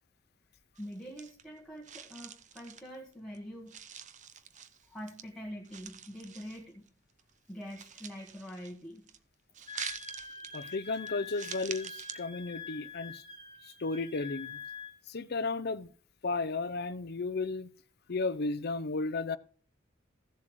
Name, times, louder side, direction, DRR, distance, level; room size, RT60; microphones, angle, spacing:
voice 1, 0.8-3.8 4.9-6.9 7.5-9.1, equal, ahead, 1.5 m, -44 dB
sound 1, 0.8-1.6 1.8-3.4 3.7-5.2 5.7-6.9 7.2-9.2 9.5-12.2, right 8 dB, 40° right, 0.7 m, -46 dB
Wind instrument woodwind instrument, 9.7-15.0, left 5 dB, 20° left, 2.1 m, -45 dB
voice 2, 10.5-13.2 13.6-14.6 15.1-15.9 16.2-17.7 18.1-19.4, left 3 dB, 55° left, 0.6 m, -34 dB
15.5 x 7.4 x 3.1 m
head